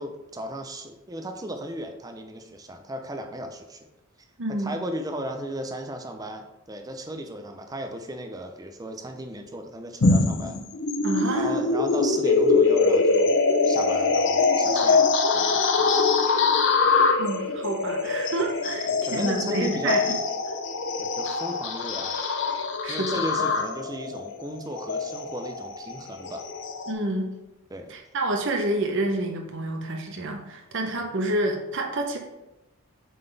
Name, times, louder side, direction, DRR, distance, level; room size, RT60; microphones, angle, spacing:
voice 1, 0.0-3.9 4.6-10.6 11.3-13.4 13.6-15.1 15.3-16.1 16.8-16.9 18.9-20.2 21.0-22.2 22.9-26.4 27.7-27.9, right 1 dB, 15° right, 5 dB, 0.5 m, -35 dB
voice 2, 4.4-4.7 11.0-11.5 17.2-20.2 22.8-23.2 26.9-27.3 27.9-32.2, right 1 dB, 55° right, 2 dB, 0.8 m, -28 dB
sound 1, 10.0-26.9, left 4 dB, 55° left, 0.6 m, -23 dB
7.5 x 3.9 x 3.4 m, 0.96 s
head